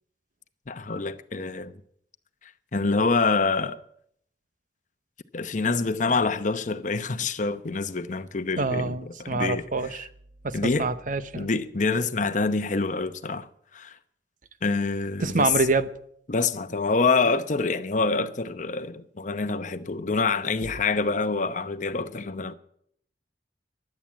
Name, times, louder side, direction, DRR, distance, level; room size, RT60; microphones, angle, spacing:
voice 1, 0.7-1.7 2.7-3.8 5.3-9.6 10.5-10.9 11.4-13.5 13.7-13.9 14.6-15.5 16.3-22.5, left 4 dB, 45° left, 0.8 m, -26 dB
voice 2, 8.6-10.1 10.4-11.5 15.2-15.9, right 3 dB, 50° right, 0.8 m, -26 dB
16.0 x 11.0 x 7.4 m
head